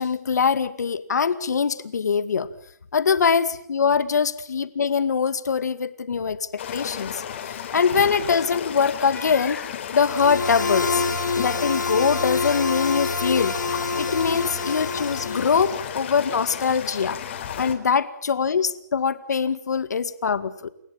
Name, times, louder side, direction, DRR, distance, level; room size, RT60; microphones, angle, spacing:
voice 1, 0.0-2.5 2.9-7.2 7.5-11.0 11.4-13.6 13.9-17.2 17.6-20.7, left 6 dB, 65° left, 13 dB, 2.1 m, -23 dB
sound 1, 6.6-17.8, left 9 dB, 40° left, 3.7 m, -34 dB
sound 2, 10.1-15.9, left 4 dB, 85° left, 7.6 m, -27 dB
29.0 x 16.5 x 8.9 m, 0.68 s
hypercardioid pair, 155°, 10 cm